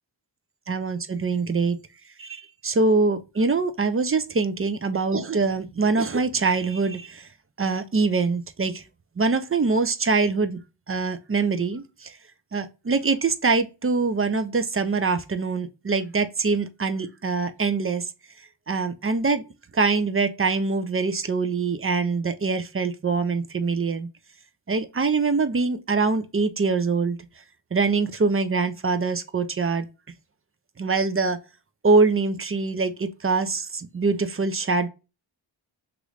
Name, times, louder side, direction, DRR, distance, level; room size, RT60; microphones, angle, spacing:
voice 1, 0.7-1.8 2.2-7.3 7.6-8.8 9.2-10.6 10.9-12.1 12.5-18.0 18.7-19.4 19.7-24.1 24.7-27.2 27.7-29.8 30.8-31.4 31.8-34.9, right 4 dB, 30° right, 0.4 m, -24 dB
3.0 x 2.5 x 3.1 m
wide cardioid pair, 45°, 48 cm